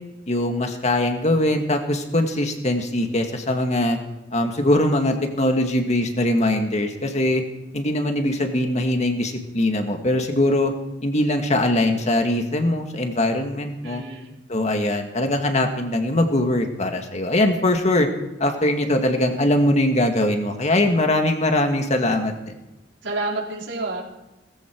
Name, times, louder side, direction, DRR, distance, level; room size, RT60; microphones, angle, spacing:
voice 1, 0.3-4.0 4.3-7.4 7.7-10.7 11.0-14.0 14.5-18.1 18.4-22.6, left 1 dB, 40° left, 4 dB, 2.0 m, -21 dB
voice 2, 13.8-14.4 23.0-24.1, right 2 dB, 85° right, -2 dB, 4.2 m, -29 dB
19.0 x 15.0 x 4.7 m, 0.96 s
head